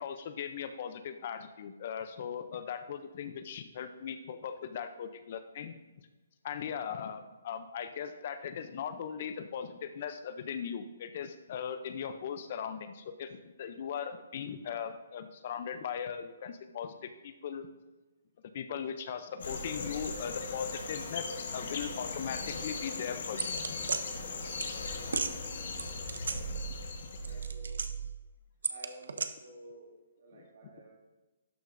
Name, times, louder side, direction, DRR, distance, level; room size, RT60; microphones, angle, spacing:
voice 1, 0.0-5.8 6.4-17.7 18.5-23.5 30.3-30.4, left 7 dB, 35° left, 10 dB, 0.4 m, -39 dB
sound 1, 19.4-27.5, left 4 dB, 55° left, 1.1 m, -39 dB
sound 2, 23.4-24.0 24.6-24.7 25.1-25.3 25.8-26.9 27.2-28.1 28.6-29.3, right 5 dB, 90° right, 0.6 m, -34 dB
voice 2, 24.9-26.6 27.2-27.9 28.7-31.0, right 1 dB, 60° right, -2 dB, 2.6 m, -53 dB
12.0 x 6.2 x 2.5 m, 1.1 s
hypercardioid pair, 170°, 0 cm